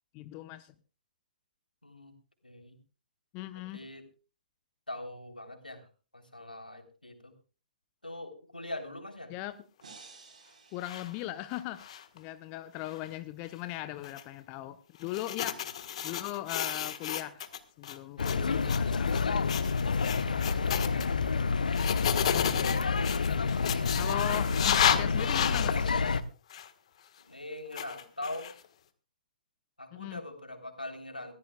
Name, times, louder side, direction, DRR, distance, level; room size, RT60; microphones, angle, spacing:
voice 1, 0.1-0.7 3.3-3.8 9.3-9.6 10.7-11.8 12.1-15.6 16.0-17.4 17.8-19.2 22.3-22.8 23.9-25.9 29.9-30.2, left 15 dB, 25° left, 12 dB, 0.8 m, -39 dB
voice 2, 1.8-2.1 2.4-2.8 3.7-4.1 4.9-5.9 6.1-7.3 8.0-9.3 27.2-28.5 29.8-31.4, left 1 dB, 85° left, 5 dB, 3.4 m, -43 dB
sound 1, 9.8-11.9, right 4 dB, 60° right, 4.3 m, -54 dB
sound 2, 10.8-11.1 11.5-12.2 12.9-13.1 14.0-14.2 15.0-17.6 17.8-18.4 18.6-18.8 19.1-19.2 19.5-21.1 21.7-25.8 26.5-26.7 27.7-28.7, left 9 dB, 45° left, 1.5 m, -32 dB
sound 3, 18.2-26.2, left 5 dB, 65° left, 1.0 m, -28 dB
24.5 x 15.5 x 2.3 m, 0.36 s
figure-of-eight pair, 125°, 5 cm